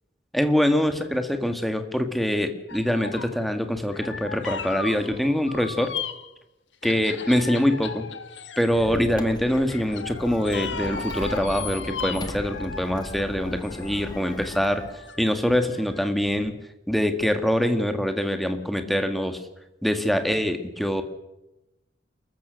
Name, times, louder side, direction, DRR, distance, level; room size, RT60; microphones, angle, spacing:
voice 1, 0.3-5.9 6.8-8.1 8.6-14.8 15.2-16.5 16.9-19.4 19.8-21.0, equal, ahead, 7 dB, 1.7 m, -24 dB
sound 1, 2.7-3.4 3.8-6.3 6.8-9.0 9.5-16.1 16.4-16.5, left 5 dB, 80° left, 1.3 m, -37 dB
Squeak, 8.7-15.1, left 1 dB, 25° left, 1.6 m, -38 dB
29.5 x 13.5 x 6.5 m, 0.97 s
head